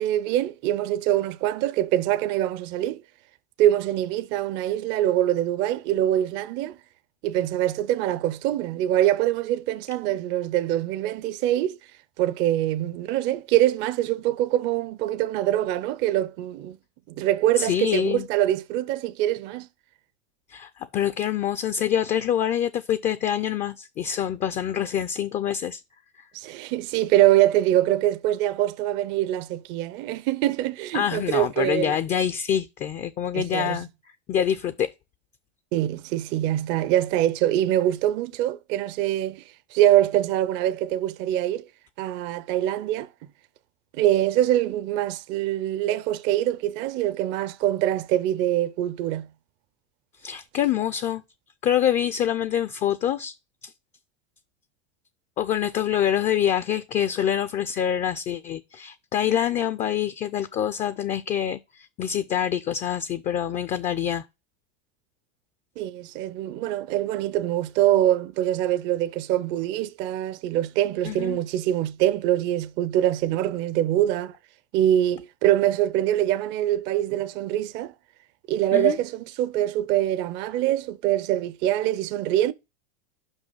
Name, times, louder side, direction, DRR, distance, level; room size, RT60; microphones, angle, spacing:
voice 1, 0.0-3.0 3.6-6.8 7.2-11.8 12.2-16.8 17.2-19.7 26.3-32.0 33.3-33.8 35.7-39.4 39.7-41.6 42.0-43.1 43.9-49.3 65.8-74.3 74.7-77.9 78.5-82.5, right 13 dB, 35° right, 0.5 m, -24 dB
voice 2, 17.6-18.3 20.5-25.8 26.2-26.3 30.9-33.9 34.3-34.9 50.2-51.2 51.6-53.4 53.6-53.7 55.4-64.2 71.0-71.4 78.7-79.0, left 10 dB, 25° left, 0.4 m, -26 dB
5.6 x 5.3 x 5.5 m
supercardioid pair, 135°, 32 cm